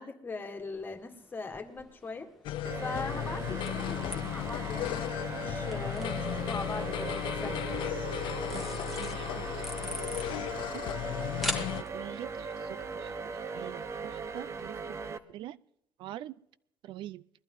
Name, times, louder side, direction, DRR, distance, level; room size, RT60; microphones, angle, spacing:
voice 1, 0.0-2.3 2.8-7.6, left 4 dB, 25° left, 6 dB, 1.8 m, -40 dB
sound 1, 0.6-14.7, left 1 dB, ahead, 1.7 m, -45 dB
sound 2, 2.4-11.8, left 13 dB, 80° left, 0.5 m, -35 dB
sound 3, 2.6-15.2, right 4 dB, 35° right, 0.9 m, -39 dB
voice 2, 8.5-10.8 11.5-15.6 16.0-16.3 16.8-17.2, right 13 dB, 80° right, 18 dB, 0.5 m, -46 dB
21.0 x 12.0 x 3.9 m, 0.74 s
cardioid pair, 145°, 8 cm